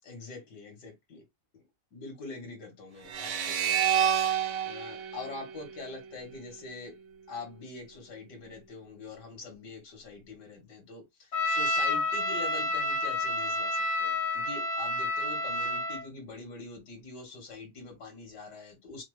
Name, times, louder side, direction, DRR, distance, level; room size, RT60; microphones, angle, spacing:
voice 1, 0.0-1.2 1.5-1.6 1.9-4.0 4.6-7.0 7.3-19.0, left 3 dB, 85° left, 2.2 m, -44 dB
sound 1, 3.1-6.4, right 9 dB, 65° right, 1.1 m, -29 dB
Trumpet, 11.3-16.1, left 1 dB, 55° left, 1.7 m, -29 dB
5.7 x 2.0 x 3.2 m
omnidirectional pair, 1.8 m